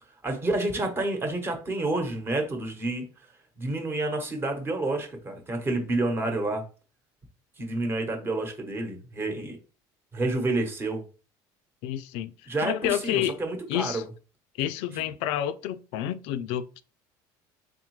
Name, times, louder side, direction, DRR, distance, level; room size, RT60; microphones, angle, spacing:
voice 1, 0.2-3.0 3.6-6.7 7.6-9.6 10.1-11.0 12.5-14.0, right 2 dB, 25° right, 1.1 m, -29 dB
voice 2, 11.8-12.3 12.6-13.4 13.7-14.0 14.6-16.8, left 11 dB, 75° left, 0.4 m, -29 dB
3.6 x 3.5 x 3.2 m
cardioid pair, 125°, 10 cm